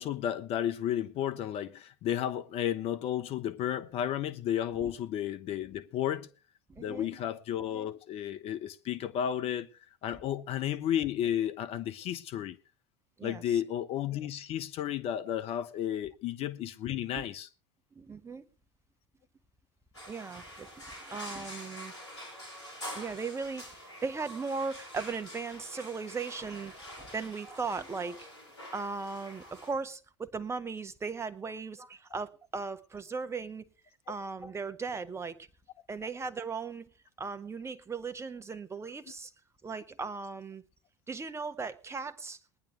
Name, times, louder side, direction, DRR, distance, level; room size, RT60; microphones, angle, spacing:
voice 1, 0.0-6.3 6.8-9.7 10.0-12.6 13.2-17.5 34.1-34.2, left 10 dB, 40° left, 1.0 m, -33 dB
voice 2, 6.7-7.1 13.2-13.4 17.1-17.2 17.9-18.4 20.1-21.9 22.9-26.7 27.0-28.3 28.7-33.7 34.1-35.5 35.9-36.9 37.2-39.3 39.6-40.6 41.1-42.6, right 4 dB, 20° right, 1.4 m, -37 dB
sound 1, 19.9-29.7, equal, 75° left, 5.6 m, -46 dB
21.5 x 10.5 x 3.2 m
figure-of-eight pair, 70°, 15 cm